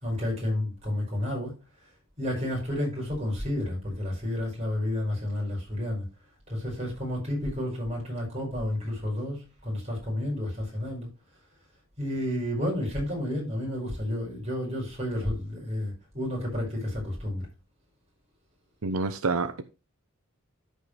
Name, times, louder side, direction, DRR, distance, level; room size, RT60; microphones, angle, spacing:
voice 1, 0.0-1.5 2.2-6.1 6.5-11.1 12.0-17.4, left 1 dB, 30° right, 5.7 m, -31 dB
voice 2, 18.8-19.6, right 3 dB, 90° right, 0.8 m, -27 dB
13.5 x 5.5 x 3.3 m
head